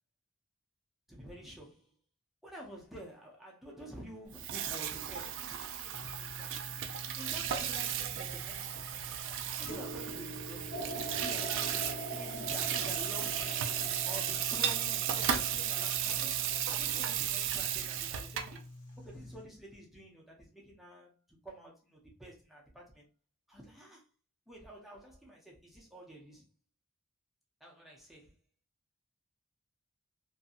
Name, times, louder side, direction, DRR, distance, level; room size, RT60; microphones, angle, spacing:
voice 1, 1.1-1.9 2.4-6.6 7.2-8.9 9.6-13.7 14.1-18.6 19.0-23.1 23.5-24.1 24.5-26.4 27.6-28.3, right 1 dB, ahead, 0.6 m, -49 dB
Water tap faucet / Sink (filling or washing), 4.3-18.6, right 10 dB, 55° right, 0.3 m, -35 dB
sound 1, 5.9-19.4, equal, 80° left, 0.8 m, -47 dB
sound 2, 10.7-16.7, right 1 dB, 45° left, 0.7 m, -44 dB
2.7 x 2.6 x 2.4 m
head